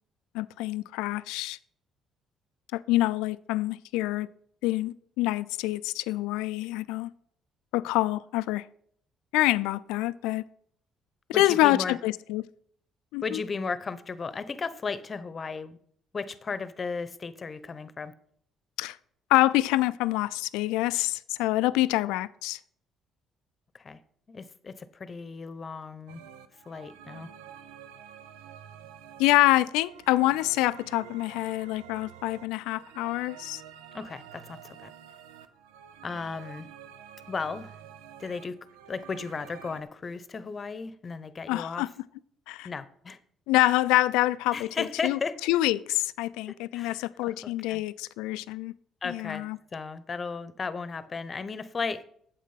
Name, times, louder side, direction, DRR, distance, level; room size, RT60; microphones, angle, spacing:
voice 1, 0.3-1.6 2.7-4.3 4.6-7.1 7.7-8.7 9.3-10.5 11.3-12.4 13.1-13.4 18.8-19.0 19.3-22.6 29.2-33.6 41.5-41.9 42.5-42.7 43.5-45.2 45.5-48.7 49.0-49.6, left 17 dB, 80° left, 0.3 m, -26 dB
voice 2, 11.3-12.0 13.2-15.8 16.1-18.1 23.7-24.0 24.3-26.2 26.7-27.3 33.9-34.9 36.0-36.7 37.3-37.8 38.2-38.6 38.9-41.9 42.6-43.2 44.5-45.4 46.5-47.8 49.0-49.5 49.7-52.0, left 4 dB, 40° left, 0.8 m, -35 dB
sound 1, 26.1-39.8, right 9 dB, 85° right, 0.6 m, -49 dB
8.5 x 7.3 x 5.7 m
supercardioid pair, 60°, 0 cm